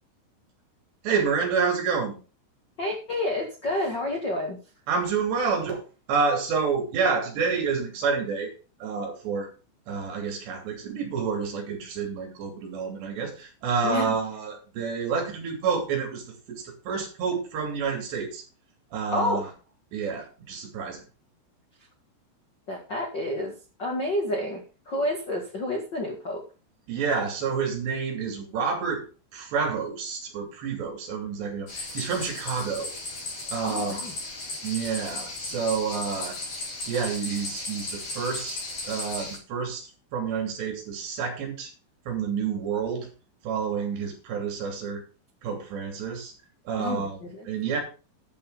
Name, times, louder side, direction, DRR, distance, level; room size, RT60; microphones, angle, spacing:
voice 1, 1.0-2.2 4.9-5.8 6.1-8.5 8.8-9.5 9.9-18.4 18.9-19.4 19.9-21.0 26.9-29.0 29.3-32.9 33.5-34.0 34.6-36.4 36.9-38.6 38.8-41.7 42.1-43.1 43.4-45.0 45.4-46.3 46.7-47.2 47.5-47.8, right 5 dB, 60° right, 2 dB, 5.0 m, -29 dB
voice 2, 2.8-4.6 13.8-14.2 19.1-19.4 22.7-26.4 33.6-34.1 46.8-47.5, left 1 dB, 75° left, 0 dB, 1.0 m, -29 dB
sound 1, 31.7-39.4, left 2 dB, 35° left, 5.3 m, -36 dB
11.0 x 7.2 x 5.0 m, 0.34 s
omnidirectional pair, 5.6 m